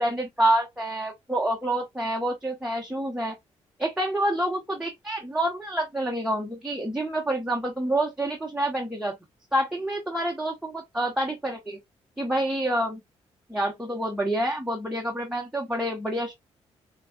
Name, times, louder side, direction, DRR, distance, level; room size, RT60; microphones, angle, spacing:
voice 1, 0.0-3.4 3.8-9.1 9.5-11.8 12.2-13.0 13.5-16.3, right 1 dB, 5° right, 1.1 m, -27 dB
5.9 x 2.4 x 2.3 m
supercardioid pair, 65°, 12 cm